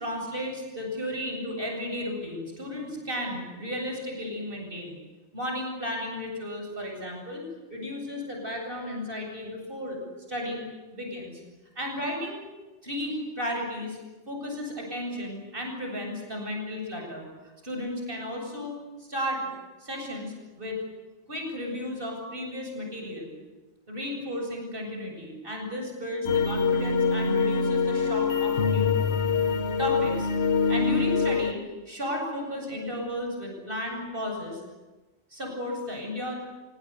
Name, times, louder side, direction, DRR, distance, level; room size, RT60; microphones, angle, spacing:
voice 1, 0.0-5.0 5.3-7.4 7.7-10.0 10.3-11.4 11.7-12.4 12.8-14.0 14.3-17.3 17.6-19.4 19.8-20.8 21.3-23.3 23.9-29.0 29.8-30.3 30.7-34.6 35.3-36.4, left 1 dB, 55° right, 1 dB, 8.4 m, -34 dB
sound 1, 26.2-31.5, left 5 dB, 70° left, 1.8 m, -24 dB
27.0 x 25.0 x 8.3 m, 1.1 s
omnidirectional pair, 1.1 m